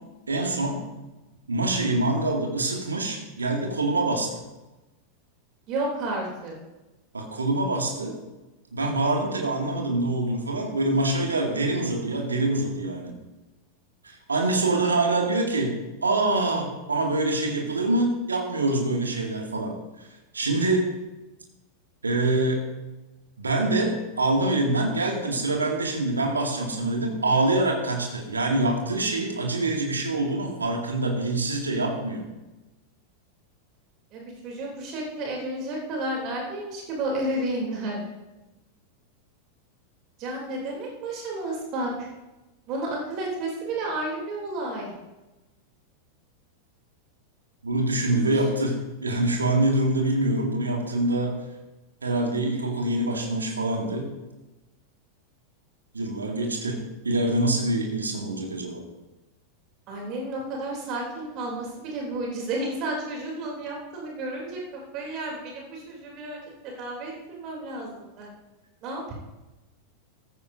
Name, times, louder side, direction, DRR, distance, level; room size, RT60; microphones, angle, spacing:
voice 1, 0.3-0.8 1.5-4.4 7.1-8.2 8.7-13.2 14.0-15.8 16.0-19.8 20.3-20.9 22.0-22.6 23.4-32.3 47.6-51.4 52.0-54.1 55.9-58.8, right 2 dB, 75° right, 1 dB, 2.2 m, -25 dB
voice 2, 5.7-6.5 34.1-38.0 40.2-42.1 42.7-44.9 48.1-48.4 59.9-68.3 68.8-69.1, right 2 dB, 40° right, -1 dB, 3.2 m, -32 dB
14.5 x 14.0 x 2.7 m, 1.1 s
figure-of-eight pair, 90°, 0 cm